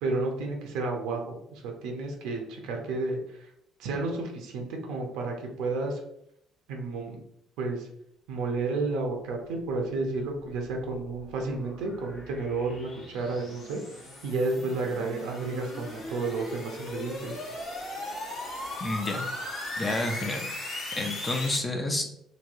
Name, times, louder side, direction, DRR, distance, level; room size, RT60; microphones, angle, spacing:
voice 1, 0.0-3.5 3.8-6.0 6.7-7.2 7.6-7.9 8.3-13.8 14.2-17.4, right 3 dB, 90° right, 1 dB, 0.7 m, -31 dB
sound 1, 10.4-21.6, left 1 dB, 30° left, 0.9 m, -38 dB
voice 2, 18.8-19.2 19.8-20.5 21.0-22.1, left 2 dB, 15° left, 3 dB, 0.4 m, -29 dB
3.1 x 2.7 x 2.6 m, 0.73 s
cardioid pair, 165°, 0 cm